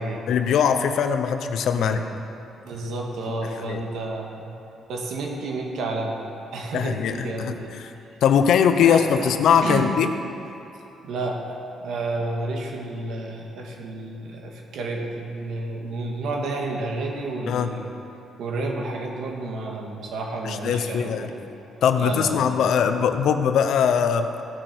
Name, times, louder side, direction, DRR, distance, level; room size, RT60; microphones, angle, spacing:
voice 1, 0.3-2.0 3.7-3.8 6.7-7.9 8.2-10.1 17.5-17.7 20.4-21.3 21.8-24.3, left 7 dB, 75° left, 8 dB, 0.8 m, -21 dB
voice 2, 1.7-2.1 2.6-4.5 4.9-6.2 6.5-7.8 8.8-9.3 9.6-9.9 11.0-17.9 18.4-21.3 22.0-22.5 22.8-23.1, right 2 dB, 75° right, 0 dB, 2.0 m, -31 dB
16.5 x 6.8 x 6.1 m, 2.9 s
cardioid pair, 90°, 0 cm